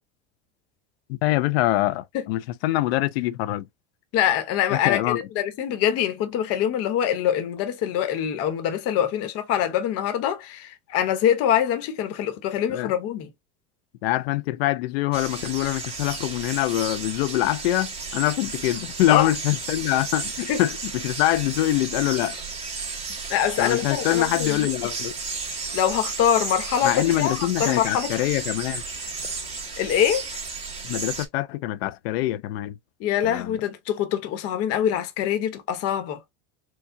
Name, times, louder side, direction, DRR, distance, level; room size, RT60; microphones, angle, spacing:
voice 1, 1.1-3.7 4.7-5.2 12.7-12.9 14.0-22.4 23.6-25.1 26.8-28.8 30.8-32.8 33.2-33.6, left 15 dB, 85° left, 0.5 m, -24 dB
voice 2, 4.1-13.3 19.1-19.3 20.5-20.6 23.3-24.7 25.7-28.1 29.8-30.3 33.0-36.2, left 10 dB, 50° left, 1.1 m, -24 dB
sound 1, 15.1-31.3, right 4 dB, 20° right, 1.6 m, -33 dB
4.5 x 2.3 x 2.6 m
supercardioid pair, 130°, 30 cm